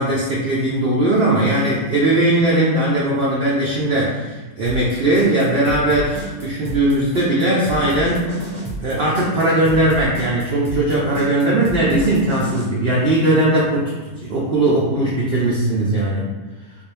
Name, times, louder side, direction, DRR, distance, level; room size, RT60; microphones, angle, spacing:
voice 1, 0.0-8.3 8.8-13.9 14.2-16.2, right 1 dB, 65° right, -5 dB, 0.6 m, -19 dB
sound 1, 4.6-12.6, right 1 dB, 20° right, 0.7 m, -31 dB
3.5 x 2.4 x 3.3 m, 1.2 s
omnidirectional pair, 1.7 m